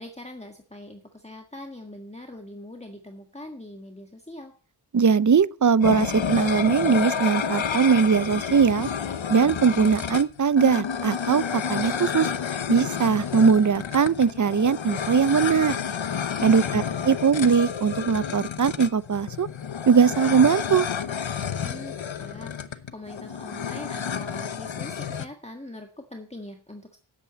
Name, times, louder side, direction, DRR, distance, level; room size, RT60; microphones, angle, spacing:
voice 1, 0.0-4.5 16.4-16.8 21.6-27.0, left 1 dB, 15° left, 1.7 m, -42 dB
voice 2, 4.9-8.9 9.3-12.3 12.7-15.8 16.4-19.5 19.9-20.9, right 6 dB, 40° right, 0.6 m, -20 dB
sound 1, 5.8-25.3, left 7 dB, 85° left, 0.9 m, -30 dB
9.9 x 8.2 x 8.4 m
wide cardioid pair, 40°, 45 cm